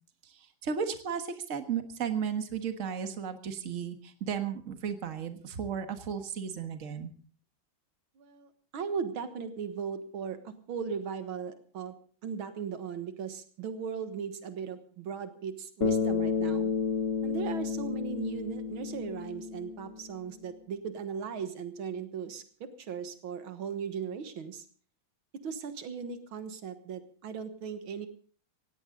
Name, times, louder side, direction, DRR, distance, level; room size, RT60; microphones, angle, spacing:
voice 1, 0.6-7.1, right 7 dB, 40° right, 7 dB, 1.8 m, -34 dB
voice 2, 8.2-11.9 12.2-16.7 17.2-24.7 25.4-28.1, right 6 dB, 85° right, 9 dB, 2.2 m, -38 dB
Bass guitar, 15.8-20.2, left 6 dB, 40° left, 1.9 m, -31 dB
17.5 x 17.0 x 3.8 m, 0.41 s
omnidirectional pair, 2.2 m